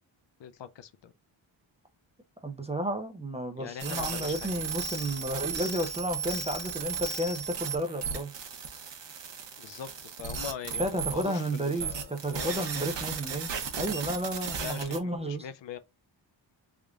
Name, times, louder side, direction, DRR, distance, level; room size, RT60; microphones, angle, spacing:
voice 1, 0.4-1.1 3.6-4.6 9.6-10.9 11.1-12.9 14.6-15.8, left 8 dB, 65° left, 0.6 m, -42 dB
voice 2, 2.4-8.3 10.8-13.5 13.8-15.5, right 1 dB, 15° right, 0.4 m, -32 dB
sound 1, 3.8-15.0, right 6 dB, 60° right, 0.9 m, -36 dB
3.5 x 2.5 x 3.3 m
wide cardioid pair, 130°, 48 cm